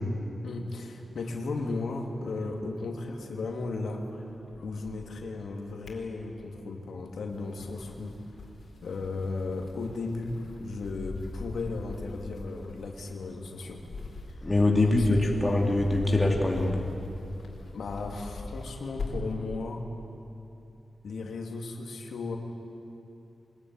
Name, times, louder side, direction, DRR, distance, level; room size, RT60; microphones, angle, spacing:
voice 1, 0.4-4.0 4.6-8.2 8.8-13.8 14.3-14.5 14.8-15.5 17.7-19.8 21.0-22.4, left 3 dB, 90° left, 2 dB, 2.6 m, -35 dB
sound 1, 1.2-3.4 3.6-5.2 5.6-6.7 7.2-19.4, left 2 dB, 65° left, 4.1 m, -42 dB
voice 2, 14.4-16.8, left 2 dB, 15° left, 0 dB, 2.8 m, -23 dB
24.0 x 20.5 x 9.7 m, 2.9 s
wide cardioid pair, 165°, 0 cm